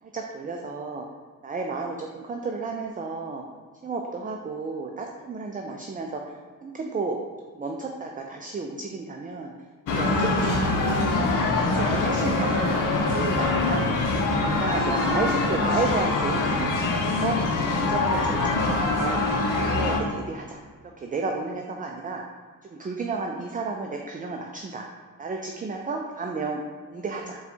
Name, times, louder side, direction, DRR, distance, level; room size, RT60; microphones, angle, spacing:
voice 1, 0.1-1.0 1.4-3.4 3.8-6.2 6.6-7.2 7.5-9.5 9.9-10.8 11.7-12.8 13.1-13.9 14.4-16.7 17.1-17.4 17.7-19.2 19.6-20.6 21.0-22.2 22.7-24.8 25.2-26.6 26.9-27.4, right 4 dB, 25° right, 1 dB, 0.4 m, -32 dB
sound 1, 9.9-20.0, left 3 dB, 70° left, 0.7 m, -24 dB
4.0 x 2.4 x 4.3 m, 1.5 s
cardioid pair, 70°, 34 cm